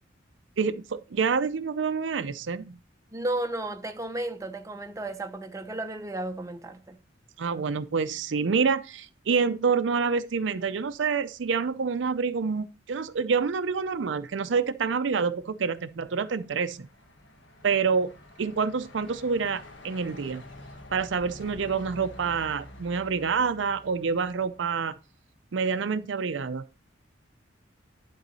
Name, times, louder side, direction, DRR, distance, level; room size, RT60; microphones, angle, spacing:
voice 1, 0.6-2.8 7.4-16.9 17.6-18.1 18.4-20.4 20.9-25.0 25.5-26.6, right 5 dB, 80° right, 0.5 m, -27 dB
voice 2, 3.1-7.0, right 2 dB, 15° right, 0.7 m, -33 dB
Truck, 15.7-25.0, left 1 dB, 85° left, 1.5 m, -48 dB
11.0 x 3.9 x 4.0 m
head